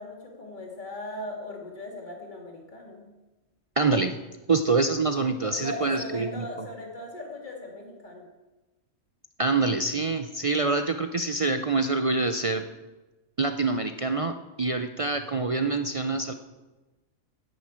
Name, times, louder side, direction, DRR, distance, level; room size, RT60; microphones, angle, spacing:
voice 1, 0.0-3.1 5.2-8.3, left 1 dB, 35° left, 0 dB, 2.7 m, -38 dB
voice 2, 3.8-4.1 4.5-6.5 9.4-12.6 13.4-16.3, right 3 dB, 55° right, 8 dB, 0.3 m, -26 dB
10.5 x 9.7 x 8.6 m, 1.1 s
omnidirectional pair, 1.5 m